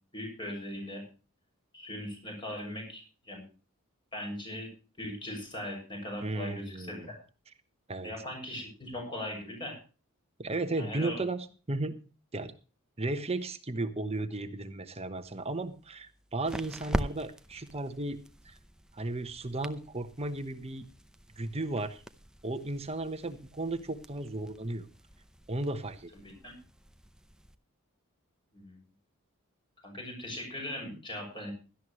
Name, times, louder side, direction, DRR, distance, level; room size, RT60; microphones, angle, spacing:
voice 1, 0.1-1.0 1.7-3.4 4.1-4.7 5.0-7.2 8.0-9.8 10.7-11.2 26.2-26.5 28.5-28.8 29.8-31.5, left 1 dB, 20° left, 2 dB, 6.8 m, -39 dB
voice 2, 6.2-7.1 7.9-8.1 10.4-11.9 12.3-12.5 13.0-18.2 18.4-18.6 18.9-20.9 21.4-22.0 22.4-24.9 25.5-26.1, right 2 dB, 30° right, 9 dB, 1.1 m, -35 dB
sound 1, 15.2-27.6, equal, 5° right, 0.7 m, -43 dB
17.0 x 12.5 x 3.1 m, 0.34 s
head